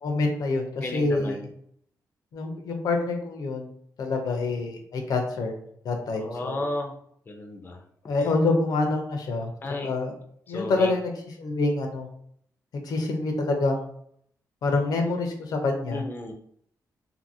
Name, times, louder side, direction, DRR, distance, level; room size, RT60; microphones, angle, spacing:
voice 1, 0.0-1.4 2.3-3.7 4.0-5.5 5.8-6.7 8.1-9.5 9.8-10.1 10.5-11.1 11.4-12.1 12.7-13.8 14.6-16.0, left 3 dB, 75° left, 3 dB, 0.6 m, -26 dB
voice 2, 0.8-1.5 6.1-6.9 7.3-7.8 8.2-8.3 9.6-9.9 10.5-10.9 15.9-16.3, left 2 dB, 30° left, 2 dB, 0.5 m, -33 dB
2.7 x 2.6 x 2.7 m, 0.66 s
cardioid pair, 115°, 7 cm